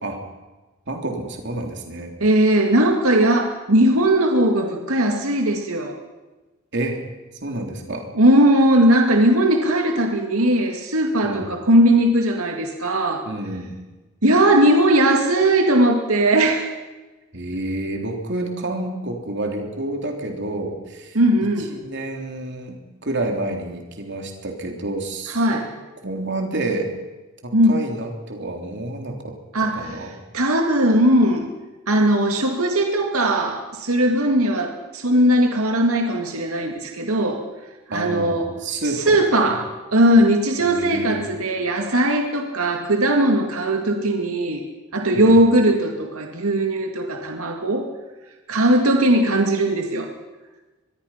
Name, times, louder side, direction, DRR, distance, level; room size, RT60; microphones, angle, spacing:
voice 1, 0.9-2.1 6.7-7.0 7.4-8.1 11.2-11.5 13.3-13.7 17.3-21.2 21.7-22.8 23.0-25.7 26.0-26.9 27.4-29.4 29.7-30.2 37.9-39.6 40.6-41.3 45.1-45.4, right 2 dB, 55° right, 3 dB, 3.5 m, -29 dB
voice 2, 2.2-6.0 8.1-13.3 14.2-16.7 21.1-21.7 25.3-25.7 27.5-27.8 29.5-30.1 30.3-31.5 31.9-37.4 37.9-38.5 38.8-44.6 44.9-47.9 48.5-50.1, right 1 dB, 85° right, 3 dB, 2.3 m, -19 dB
24.5 x 21.5 x 5.8 m, 1.2 s
head